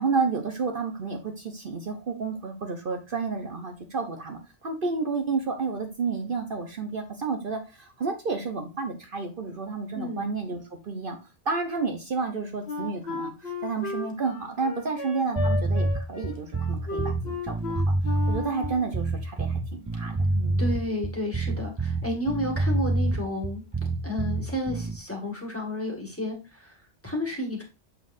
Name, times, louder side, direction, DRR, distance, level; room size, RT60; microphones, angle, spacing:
voice 1, 0.0-11.2 11.4-17.8 18.3-20.7, right 4 dB, 55° right, 4 dB, 1.0 m, -31 dB
voice 2, 9.9-10.2 20.6-23.6 24.0-26.8 27.0-27.6, left 1 dB, 10° left, 1 dB, 1.8 m, -31 dB
Wind instrument woodwind instrument, 12.7-19.0, left 4 dB, 65° left, 1.5 m, -34 dB
sound 1, 15.4-25.0, right 2 dB, 30° right, 0.4 m, -27 dB
7.3 x 5.7 x 2.5 m, 0.28 s
omnidirectional pair, 1.1 m